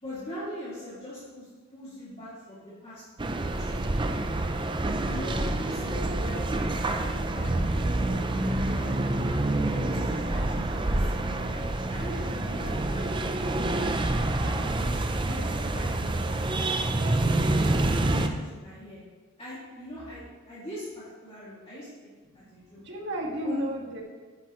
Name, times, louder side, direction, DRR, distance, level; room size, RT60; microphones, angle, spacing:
voice 1, 0.0-3.0 3.4-3.8 5.1-6.4 6.7-8.9 9.2-13.7 14.2-16.7 17.0-19.0 19.4-21.9 22.3-22.8 23.4-23.9, equal, 30° left, -10 dB, 2.4 m, -42 dB
sound 1, 3.2-18.3, right 2 dB, 25° right, 0.5 m, -27 dB
voice 2, 22.3-24.0, equal, 60° right, 0 dB, 1.7 m, -33 dB
10.5 x 9.8 x 3.1 m, 1.4 s
head